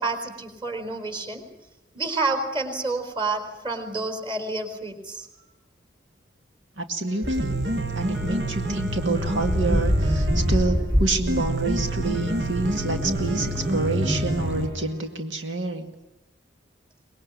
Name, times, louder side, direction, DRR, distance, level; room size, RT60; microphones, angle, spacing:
voice 1, 0.0-1.4 1.9-5.3, right 3 dB, 25° right, 7 dB, 4.2 m, -29 dB
voice 2, 6.8-7.5 8.0-15.9, right 3 dB, 80° right, 5 dB, 2.2 m, -28 dB
Piano, 7.1-15.1, right 1 dB, 65° right, 1.9 m, -28 dB
sound 1, 7.2-14.7, equal, 10° right, 4.3 m, -28 dB
24.5 x 21.0 x 9.8 m, 0.98 s
head